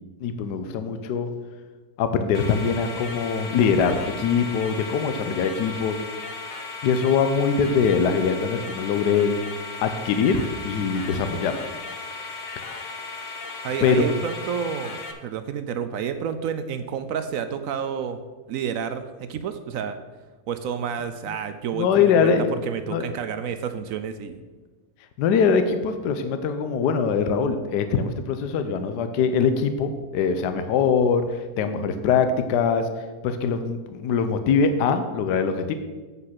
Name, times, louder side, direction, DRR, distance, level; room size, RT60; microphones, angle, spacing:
voice 1, 0.2-1.3 2.0-6.0 6.8-9.3 9.8-11.6 13.8-14.1 21.7-22.5 22.9-23.1 25.2-32.9 33.2-35.7, left 6 dB, 80° left, 8 dB, 1.2 m, -22 dB
sound 1, 2.3-15.1, left 4 dB, 40° left, 0.7 m, -36 dB
voice 2, 13.6-18.2 18.5-20.0 20.5-22.3 22.7-24.4, right 7 dB, 70° right, 10 dB, 0.8 m, -30 dB
8.1 x 5.5 x 5.8 m, 1.3 s
omnidirectional pair, 1.8 m